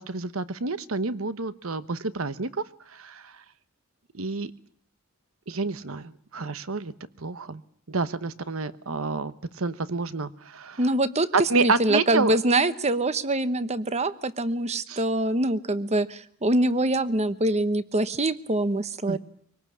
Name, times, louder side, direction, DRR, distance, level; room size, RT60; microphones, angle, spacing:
voice 1, 0.0-3.4 4.1-4.5 5.5-6.9 7.2-7.6 7.9-10.8 11.3-12.3 14.9-15.0 19.1-19.2, right 4 dB, 75° right, 14 dB, 1.1 m, -29 dB
voice 2, 10.8-19.2, right 1 dB, 30° right, 14 dB, 1.0 m, -24 dB
24.5 x 19.0 x 8.6 m, 0.66 s
head